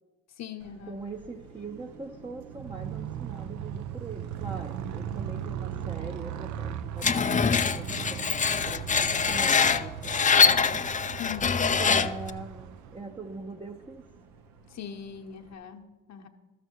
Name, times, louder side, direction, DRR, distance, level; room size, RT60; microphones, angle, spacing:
voice 1, 0.4-1.0 11.2-11.6 14.7-16.3, left 8 dB, 55° left, 4 dB, 1.1 m, -40 dB
Car passing by, 0.6-15.5, right 5 dB, 80° right, 1.0 m, -48 dB
voice 2, 0.9-7.1 7.4-10.8 11.8-14.0, right 3 dB, 15° right, 3 dB, 0.7 m, -42 dB
Motorcycle, 2.5-13.2, right 10 dB, 60° right, 0.6 m, -38 dB
Screech, 7.0-12.3, left 6 dB, 25° left, 0.5 m, -24 dB
12.5 x 6.8 x 4.6 m, 1.2 s
supercardioid pair, 55°, 33 cm